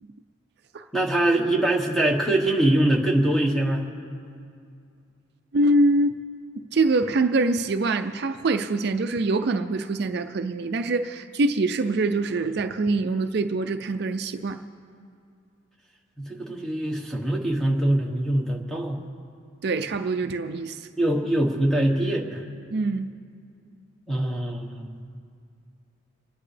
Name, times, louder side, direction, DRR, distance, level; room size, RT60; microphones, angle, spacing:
voice 1, 0.9-3.8 16.2-19.0 21.0-22.4 24.1-25.0, right 1 dB, ahead, 0 dB, 1.2 m, -23 dB
voice 2, 5.5-6.2 6.6-14.6 19.6-20.9 22.7-23.1, right 2 dB, 50° right, 7 dB, 0.4 m, -24 dB
29.5 x 10.5 x 3.3 m, 2.3 s
head